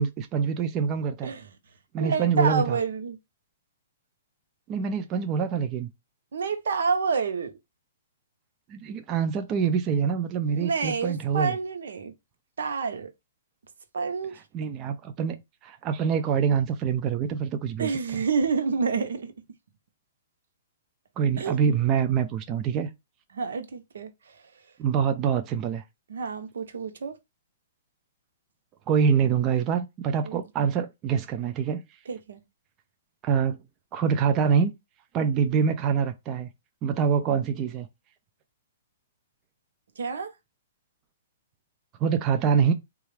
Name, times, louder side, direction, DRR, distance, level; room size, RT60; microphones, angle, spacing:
voice 1, 0.0-1.3 1.9-2.8 4.7-5.9 8.7-11.6 14.3-15.4 15.6-17.9 21.2-22.9 24.8-25.8 28.9-31.8 33.2-33.6 33.9-34.7 35.1-36.5 36.8-37.9 42.0-42.7, right 7 dB, 25° right, 0.4 m, -25 dB
voice 2, 2.0-3.2 6.3-7.5 10.5-12.1 12.6-13.1 13.9-14.3 17.8-19.3 21.4-21.6 23.3-24.1 26.1-27.1 30.2-30.5 32.1-32.4 40.0-40.3, right 5 dB, 80° right, 0.7 m, -28 dB
3.9 x 2.3 x 3.2 m
hypercardioid pair, 155°, 0 cm